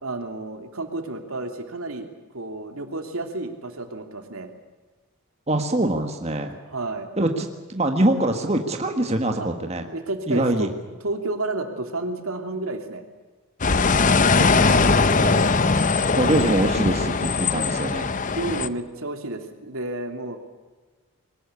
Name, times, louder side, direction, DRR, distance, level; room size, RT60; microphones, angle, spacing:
voice 1, 0.0-2.1 2.3-4.5 6.7-7.1 7.4-7.5 9.4-9.5 9.9-10.7 11.0-13.0 15.1-15.4 18.3-20.4, right 2 dB, 80° right, 5 dB, 2.9 m, -31 dB
voice 2, 5.5-6.6 7.2-9.9 10.3-10.7 14.4-15.0 16.2-18.1, right 1 dB, 30° right, 4 dB, 1.6 m, -24 dB
sound 1, 13.6-18.7, left 4 dB, 35° left, 0.8 m, -20 dB
22.0 x 19.0 x 8.4 m, 1.3 s
head